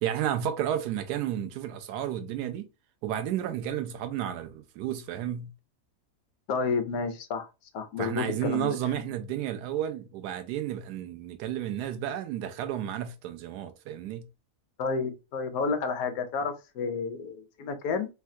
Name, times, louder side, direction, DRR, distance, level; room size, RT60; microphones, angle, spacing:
voice 1, 0.0-2.7 3.0-5.5 8.0-14.3, right 11 dB, 85° right, 1.1 m, -32 dB
voice 2, 6.5-7.5 7.7-8.7 14.8-18.1, left 5 dB, 70° left, 1.0 m, -30 dB
3.4 x 2.3 x 2.6 m
omnidirectional pair, 1.7 m